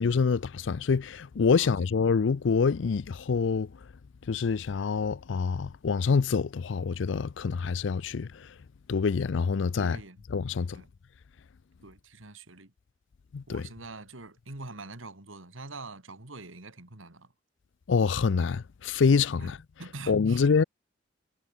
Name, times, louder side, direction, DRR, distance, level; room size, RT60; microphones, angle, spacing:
voice 1, 0.0-3.7 4.3-8.3 8.9-10.0 10.3-10.8 13.3-13.6 17.9-19.5 20.1-20.6, left 5 dB, 65° left, 0.4 m, -26 dB
voice 2, 1.5-1.9 9.7-10.2 10.7-10.9 11.8-12.7 13.5-17.3 19.4-20.5, right 3 dB, 80° right, 3.1 m, -45 dB
head